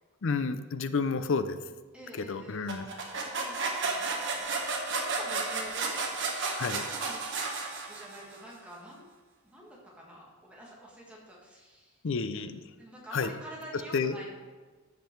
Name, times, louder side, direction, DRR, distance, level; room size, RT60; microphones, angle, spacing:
voice 1, 0.2-1.6 2.1-2.9 6.6-6.8 12.0-12.6 13.1-13.3 13.9-14.1, left 4 dB, 60° left, 11 dB, 0.5 m, -30 dB
voice 2, 1.9-2.7 3.4-7.2 7.8-9.1 9.4-12.0 12.3-12.4 12.8-14.3, right 1 dB, 5° right, -4 dB, 1.7 m, -48 dB
sound 1, 2.7-8.3, right 3 dB, 55° right, 1.4 m, -32 dB
14.5 x 5.3 x 4.5 m, 1.3 s
head